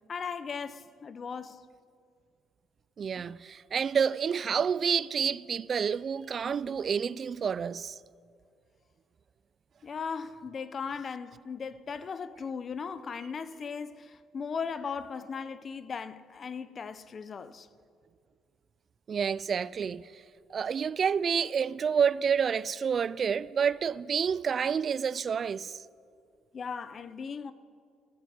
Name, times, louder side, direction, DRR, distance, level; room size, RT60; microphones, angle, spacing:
voice 1, 0.1-1.6 9.8-17.7 26.5-27.5, left 6 dB, 45° left, 0.8 m, -37 dB
voice 2, 3.0-8.0 19.1-20.0 20.5-25.8, right 7 dB, 45° right, 0.3 m, -29 dB
15.5 x 9.2 x 9.5 m
supercardioid pair, 80°, 0 cm